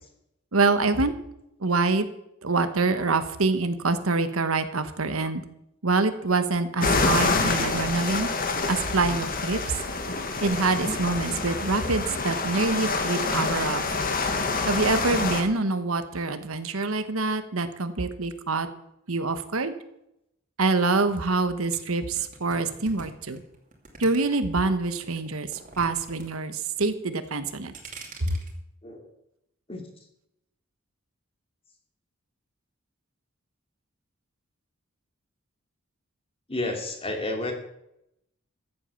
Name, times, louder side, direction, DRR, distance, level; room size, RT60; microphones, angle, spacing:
voice 1, 0.5-1.1 1.6-2.0 2.4-5.4 5.8-8.3 8.7-9.6 10.4-13.8 14.7-18.7 19.1-19.7 20.6-23.4 24.0-25.5 25.8-27.7 28.2-28.4, right 3 dB, 85° right, 10 dB, 1.2 m, -25 dB
sound 1, 6.8-15.4, left 3 dB, 45° left, 1.8 m, -27 dB
sound 2, 21.7-24.6 25.0-26.3 26.5-27.0 27.4-28.5, right 3 dB, 40° right, 2.8 m, -44 dB
voice 2, 36.5-37.5, left 2 dB, 30° left, 3 dB, 2.7 m, -30 dB
14.5 x 8.4 x 7.0 m, 0.81 s
head